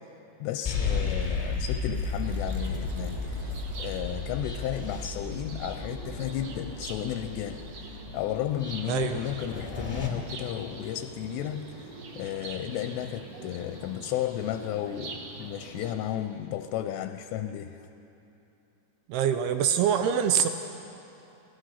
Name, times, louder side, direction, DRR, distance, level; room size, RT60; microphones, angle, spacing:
voice 1, 0.4-7.6 7.9-17.8, left 12 dB, 80° left, 8 dB, 2.6 m, -33 dB
sound 1, 0.6-10.1, left 4 dB, 40° left, 0.5 m, -34 dB
sound 2, 2.2-15.9, right 3 dB, 60° right, 1.6 m, -43 dB
voice 2, 8.9-9.2 19.1-20.5, right 8 dB, 80° right, 8 dB, 2.3 m, -24 dB
26.0 x 18.0 x 5.7 m, 2.9 s
omnidirectional pair, 5.4 m